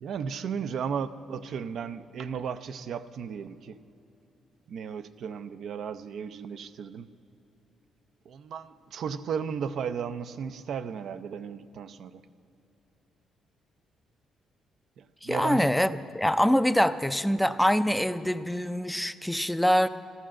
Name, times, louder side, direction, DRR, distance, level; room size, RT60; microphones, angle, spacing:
voice 1, 0.0-3.8 4.7-7.1 8.3-12.2 15.0-15.7 16.4-16.5, right 7 dB, 65° right, 10 dB, 0.5 m, -35 dB
voice 2, 15.2-19.9, equal, 5° left, 12 dB, 0.4 m, -24 dB
13.0 x 12.5 x 7.5 m, 2.7 s
cardioid pair, 90°, 0 cm